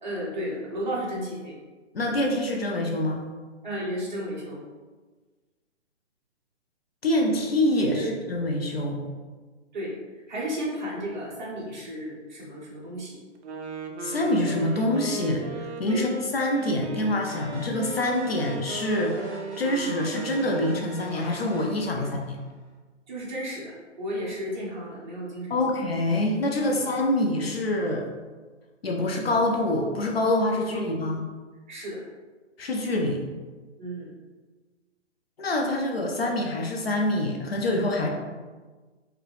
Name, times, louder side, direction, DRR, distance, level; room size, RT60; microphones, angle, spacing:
voice 1, 0.0-1.6 3.6-4.6 7.2-7.3 7.9-8.1 9.7-10.0 10.3-13.2 15.9-16.1 22.0-22.1 23.1-25.6 26.6-26.8 30.5-31.0 31.7-32.0 33.8-34.1, equal, 40° right, -6 dB, 1.2 m, -33 dB
voice 2, 1.9-3.2 7.0-9.0 14.0-19.2 19.6-22.4 25.5-28.0 28.8-31.2 32.6-33.2 35.4-38.1, left 1 dB, 55° left, 1 dB, 0.6 m, -26 dB
Wind instrument woodwind instrument, 13.4-21.3, right 3 dB, 65° right, 0.5 m, -37 dB
sound 1, 17.2-22.7, equal, 20° left, 1.1 m, -45 dB
4.7 x 2.2 x 3.3 m, 1.3 s
hypercardioid pair, 170°, 37 cm